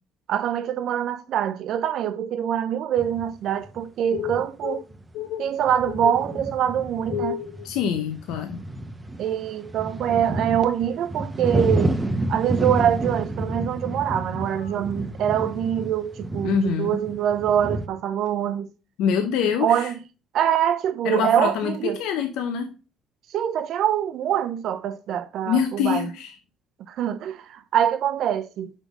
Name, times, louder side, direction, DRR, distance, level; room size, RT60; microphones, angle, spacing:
voice 1, 0.3-4.8 5.4-7.4 9.2-12.0 12.3-18.7 19.6-19.9 20.3-22.0 23.3-26.1 26.9-28.7, right 10 dB, 70° right, 0.6 m, -24 dB
sound 1, 3.0-3.3 3.7-3.8 4.2-4.6 4.9-5.1 5.6-17.9, right 1 dB, 20° right, 0.8 m, -30 dB
voice 2, 4.1-4.8 5.1-5.5 5.9-6.3 7.1-8.6 14.5-14.8 16.4-17.0 19.0-19.9 21.0-22.8 25.5-26.4, left 8 dB, 85° left, 0.6 m, -26 dB
5.5 x 5.1 x 4.8 m
cardioid pair, 90°, 0 cm